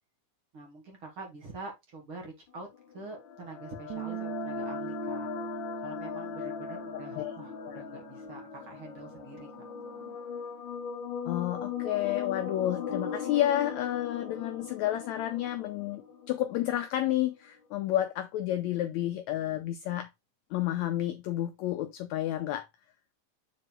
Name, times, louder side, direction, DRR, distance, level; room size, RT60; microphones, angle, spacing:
voice 1, 0.5-2.7 2.9-5.3 5.8-9.5, right 3 dB, 45° right, 2.4 m, -45 dB
sound 1, 2.7-16.9, left 7 dB, 65° left, 1.2 m, -39 dB
sound 2, 3.9-10.1, right 20 dB, 85° right, 1.5 m, -43 dB
voice 2, 11.3-20.1 20.5-22.7, left 13 dB, 85° left, 1.6 m, -30 dB
7.5 x 3.9 x 3.6 m
omnidirectional pair, 3.9 m